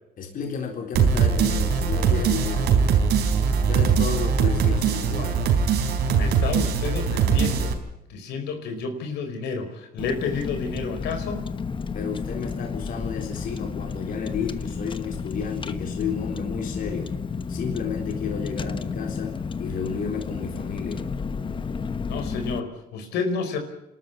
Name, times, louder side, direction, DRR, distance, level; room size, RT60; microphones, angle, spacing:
voice 1, 0.2-2.7 3.5-5.5 11.9-17.1 17.5-19.3 19.6-21.0, left 6 dB, 55° left, 2 dB, 3.9 m, -32 dB
sound 1, 0.9-7.7, right 6 dB, 75° right, 3.9 m, -21 dB
voice 2, 6.1-7.7 8.1-11.4 22.1-23.6, left 4 dB, 80° left, 6 dB, 4.8 m, -30 dB
Car, 10.0-22.6, left 5 dB, 30° left, 1.2 m, -32 dB
28.0 x 13.0 x 8.8 m, 0.86 s
cardioid pair, 110°, 17 cm